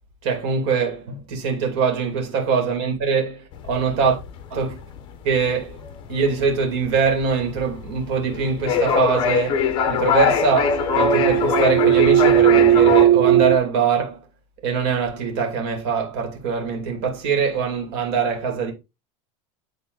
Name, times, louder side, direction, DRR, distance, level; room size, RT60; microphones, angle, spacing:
voice 1, 0.2-4.2 4.5-4.8 5.2-5.8 6.1-14.2 14.6-18.7, right 5 dB, 55° right, 2.7 m, -23 dB
sound 1, 3.5-13.1, left 6 dB, 30° left, 1.0 m, -23 dB
sound 2, 9.6-13.6, right 11 dB, 25° right, 0.4 m, -17 dB
9.3 x 3.7 x 3.9 m
supercardioid pair, 175°, 16 cm